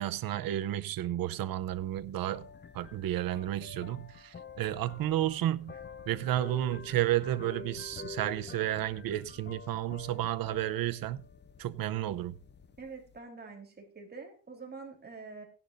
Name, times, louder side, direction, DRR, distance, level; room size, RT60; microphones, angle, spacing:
voice 1, 0.0-2.5 2.7-5.8 6.1-11.2 11.6-12.4, right 13 dB, 75° right, 0.8 m, -32 dB
sound 1, 1.6-13.2, left 5 dB, 30° left, 0.7 m, -48 dB
voice 2, 12.8-15.4, right 4 dB, 30° right, 3.6 m, -46 dB
16.5 x 11.0 x 2.6 m
cardioid pair, 145°, 35 cm